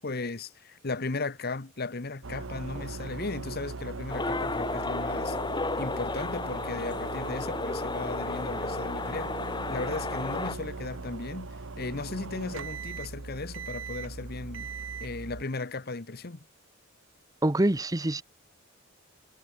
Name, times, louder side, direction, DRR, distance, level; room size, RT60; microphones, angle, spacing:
voice 1, 0.0-5.4 5.8-9.3 9.7-14.7 15.0-16.5, left 3 dB, 50° left, 1.1 m, -36 dB
sound 1, 2.2-15.4, right 3 dB, 75° right, 1.1 m, -39 dB
sound 2, 4.1-10.5, left 3 dB, 20° left, 1.3 m, -33 dB
voice 2, 17.4-18.2, right 1 dB, 20° right, 0.8 m, -25 dB
head